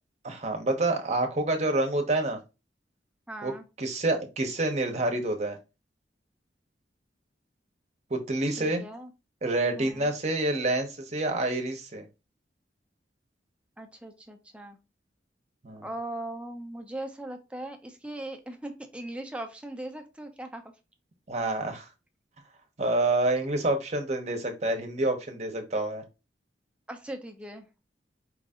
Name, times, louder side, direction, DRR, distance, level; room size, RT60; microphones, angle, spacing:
voice 1, 0.2-2.4 3.4-3.5 3.8-5.6 8.1-8.8 9.4-12.0 15.6-15.9 21.3-21.9 22.8-26.0, right 2 dB, 40° right, 5 dB, 1.0 m, -28 dB
voice 2, 3.3-3.6 8.5-9.1 9.8-10.1 13.8-14.8 15.8-20.6 26.9-27.7, right 1 dB, 5° right, 5 dB, 0.7 m, -39 dB
4.9 x 2.6 x 3.6 m, 0.27 s
head